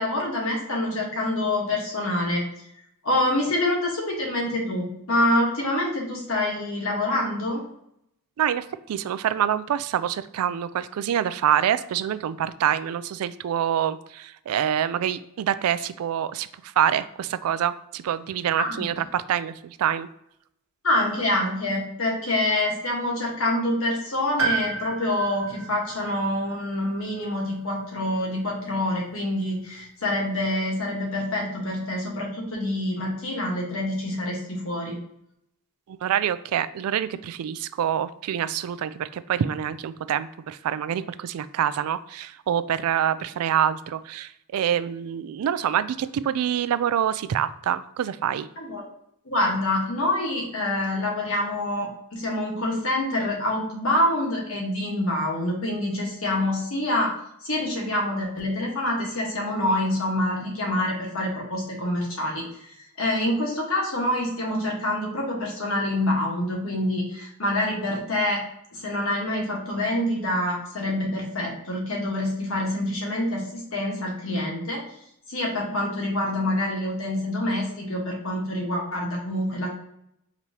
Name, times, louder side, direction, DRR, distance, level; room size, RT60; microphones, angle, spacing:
voice 1, 0.0-2.5 3.0-7.6 18.6-18.9 20.8-35.0 48.6-48.9 49.2-57.1 57.4-68.4 68.7-74.8 75.3-79.7, left 1 dB, 65° left, -2 dB, 1.4 m, -26 dB
voice 2, 8.4-20.1 35.9-48.5, right 9 dB, 75° right, 14 dB, 0.3 m, -26 dB
Piano, 24.4-28.3 28.5-28.6 29.8-29.9, right 5 dB, 60° right, 1.1 m, -32 dB
5.2 x 3.0 x 2.8 m, 0.77 s
head